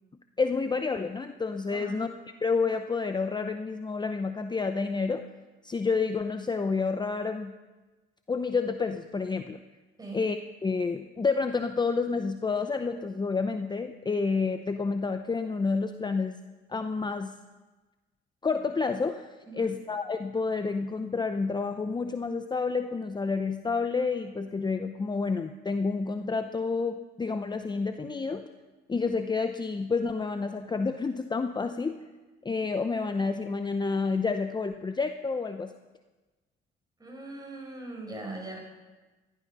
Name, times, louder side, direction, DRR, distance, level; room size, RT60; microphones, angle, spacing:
voice 1, 0.4-2.1 2.4-5.3 5.6-7.5 8.3-9.6 10.1-16.4 16.7-17.3 18.4-28.5 28.9-32.0 32.4-35.7, left 4 dB, 20° left, 8 dB, 0.6 m, -29 dB
voice 2, 37.0-38.6, right 2 dB, 20° right, 1 dB, 4.8 m, -40 dB
15.0 x 12.0 x 5.5 m, 1.2 s
cardioid pair, 90°, 20 cm